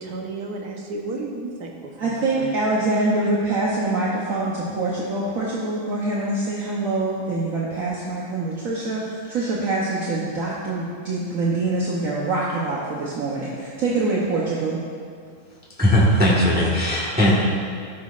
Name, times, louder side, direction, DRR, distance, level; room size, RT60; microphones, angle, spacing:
voice 1, 0.0-2.6 3.2-3.3, right 3 dB, 80° right, 0 dB, 1.5 m, -33 dB
voice 2, 2.0-14.8, right 2 dB, 65° right, -5 dB, 1.3 m, -25 dB
voice 3, 15.8-17.3, equal, 5° right, -6 dB, 1.2 m, -18 dB
13.0 x 6.2 x 2.4 m, 2.2 s
omnidirectional pair, 1.6 m